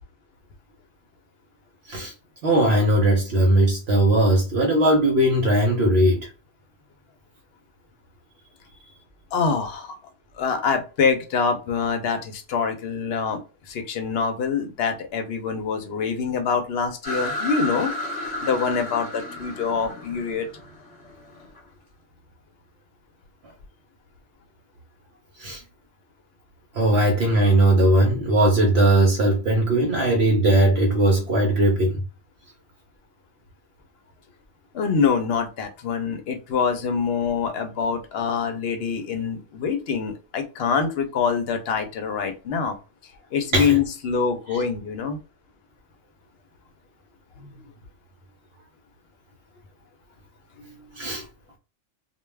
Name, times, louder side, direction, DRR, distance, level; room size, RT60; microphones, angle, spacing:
voice 1, 2.4-6.3 25.4-25.6 26.7-32.0 43.5-43.8 44.5-44.6 51.0-51.3, right 1 dB, 65° right, 0.8 m, -19 dB
voice 2, 9.3-9.9 10.4-17.9 18.4-20.5 34.7-42.8 43.3-45.2 47.4-47.6 50.6-50.7, left 6 dB, 65° left, 0.7 m, -25 dB
sound 1, 17.0-21.6, left 1 dB, 30° left, 1.0 m, -32 dB
2.2 x 2.2 x 3.1 m
omnidirectional pair, 1.2 m